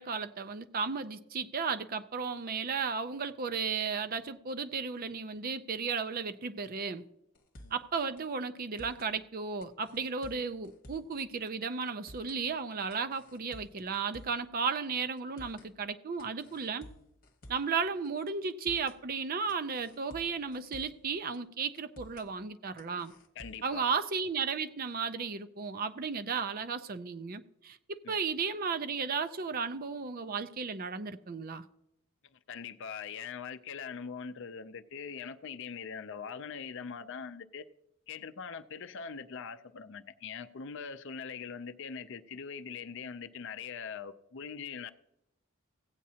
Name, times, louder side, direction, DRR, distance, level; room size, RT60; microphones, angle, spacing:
voice 1, 0.0-7.1 7.7-16.9 17.5-23.1 23.6-31.7, right 5 dB, 40° right, 0.5 m, -34 dB
sound 1, 7.3-7.9 8.2-8.3 8.6-9.1 9.6-11.2 11.5-11.6 11.9-12.4 12.9-14.5 14.7-14.8 15.2-15.7 16.2-17.8 18.0-18.1 18.5-19.0 19.5-21.1 21.3-21.4 21.7-22.3 22.8-23.7, equal, 40° left, 1.3 m, -53 dB
voice 2, 23.4-23.9 28.0-28.1 32.5-37.7 38.1-44.9, left 6 dB, 55° left, 0.5 m, -42 dB
16.0 x 8.5 x 2.8 m
head